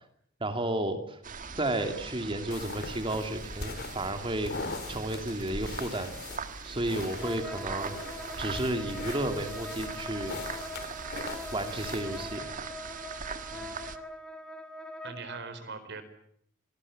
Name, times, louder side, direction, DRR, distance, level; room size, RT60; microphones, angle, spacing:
voice 1, 0.4-1.2 1.6-4.5 4.9-6.1 6.6-7.9 8.4-10.4 11.5-12.5, right 1 dB, 25° right, 6 dB, 2.7 m, -32 dB
sound 1, 1.2-14.0, right 5 dB, 40° right, 1.6 m, -41 dB
sound 2, 2.5-12.4, left 3 dB, 50° left, 2.7 m, -42 dB
Wind instrument woodwind instrument, 7.2-15.4, left 1 dB, 5° left, 2.2 m, -42 dB
voice 2, 15.0-16.0, right 4 dB, 60° right, 10 dB, 4.5 m, -41 dB
27.5 x 19.5 x 8.8 m, 0.69 s
head